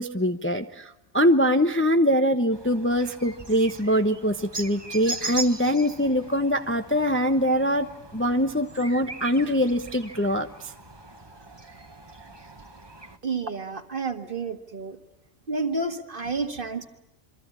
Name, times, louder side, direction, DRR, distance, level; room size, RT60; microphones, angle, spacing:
voice 1, 0.0-10.5, equal, 10° left, 7 dB, 0.8 m, -23 dB
sound 1, 2.5-13.2, right 3 dB, 20° right, 1.5 m, -40 dB
voice 2, 13.2-15.0 15.5-16.9, right 3 dB, 45° right, 7 dB, 1.9 m, -30 dB
27.5 x 24.5 x 8.6 m, 0.85 s
omnidirectional pair, 1.3 m